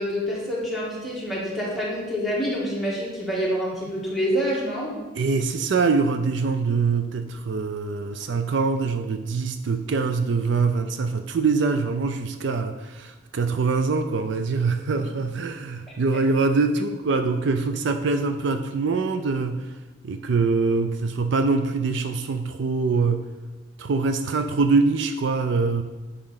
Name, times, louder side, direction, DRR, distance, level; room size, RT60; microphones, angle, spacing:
voice 1, 0.0-4.9, equal, ahead, -6 dB, 1.6 m, -27 dB
voice 2, 5.2-19.7 20.0-23.2 23.8-25.8, right 4 dB, 65° right, 7 dB, 0.4 m, -24 dB
10.5 x 3.8 x 3.8 m, 1.2 s
head